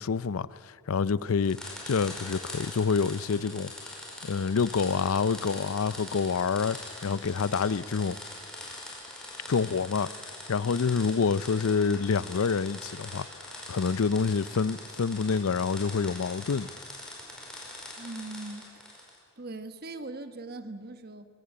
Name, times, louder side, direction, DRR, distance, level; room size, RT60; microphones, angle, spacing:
voice 1, 0.0-3.9 4.2-8.2 9.5-10.1 10.5-13.3 13.7-16.7, left 5 dB, 75° left, 0.5 m, -27 dB
sound 1, 1.4-19.2, left 1 dB, 5° left, 4.9 m, -43 dB
voice 2, 18.0-18.7 19.4-21.3, right 2 dB, 45° right, 1.2 m, -40 dB
21.5 x 17.0 x 8.7 m
head